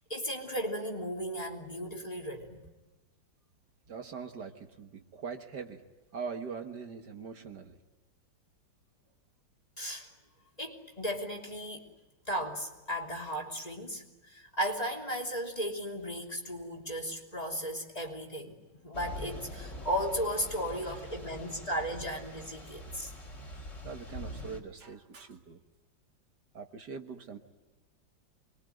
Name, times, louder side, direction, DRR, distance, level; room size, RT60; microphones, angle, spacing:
voice 1, 0.1-2.6 9.8-10.1 10.6-11.8 12.3-18.6 18.8-23.1, equal, 20° left, 3.3 m, -35 dB
voice 2, 3.9-5.8 6.1-7.8 23.8-25.6 26.5-27.4, right 5 dB, 65° right, 2.2 m, -42 dB
Thunder / Rain, 18.9-24.6, left 1 dB, 40° left, 3.8 m, -44 dB
27.0 x 22.5 x 9.3 m
omnidirectional pair, 2.0 m